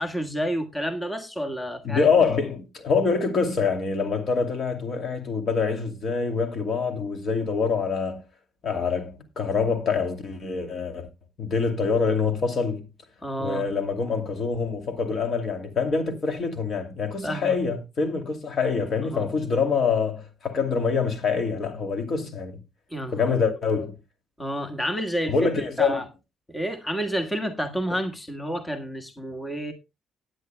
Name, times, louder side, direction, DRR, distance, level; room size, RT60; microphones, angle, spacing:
voice 1, 0.0-2.1 13.2-13.7 17.2-17.6 19.1-19.3 22.9-23.3 24.4-26.0 26.5-29.7, equal, 15° left, 1.6 m, -30 dB
voice 2, 1.8-8.2 8.6-11.1 11.4-12.8 13.4-22.6 23.1-23.9 25.3-26.0, left 5 dB, 50° left, 2.5 m, -25 dB
17.5 x 9.5 x 2.2 m
cardioid pair, 90°, 0 cm